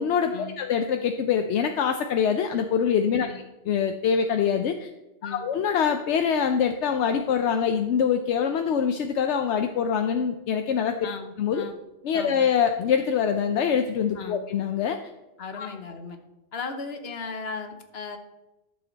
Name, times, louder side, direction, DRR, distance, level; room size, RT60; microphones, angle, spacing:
voice 1, 0.0-4.9 5.2-11.0 11.4-11.6 12.0-15.0 15.6-15.7, left 7 dB, 80° left, 6 dB, 0.9 m, -24 dB
voice 2, 11.0-11.7 12.1-12.5 14.1-14.4 15.4-16.2 16.5-18.2, left 5 dB, 60° left, 6 dB, 1.3 m, -36 dB
12.5 x 6.9 x 4.0 m, 1.0 s
omnidirectional pair, 1.2 m